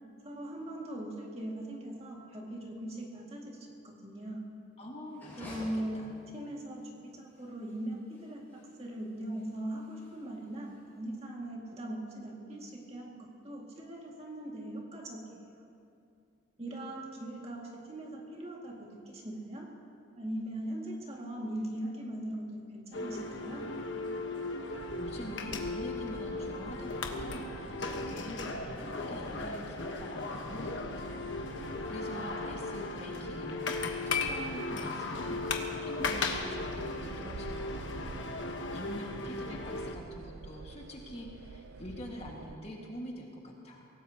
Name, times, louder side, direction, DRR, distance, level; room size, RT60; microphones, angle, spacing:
voice 1, 0.2-3.6 3.8-4.4 5.4-6.0 6.3-15.2 16.6-19.7 20.2-23.7, right 1 dB, 30° right, -2 dB, 2.2 m, -40 dB
voice 2, 4.8-6.2 25.0-38.3 38.7-43.9, equal, 30° left, -1 dB, 1.8 m, -45 dB
sound 1, 5.1-11.2, left 1 dB, 10° left, 5.0 m, -53 dB
sound 2, 22.9-40.0, left 3 dB, 70° left, 1.2 m, -37 dB
sound 3, 24.7-42.6, right 4 dB, 80° right, 0.5 m, -48 dB
24.0 x 18.0 x 2.9 m, 2.5 s
head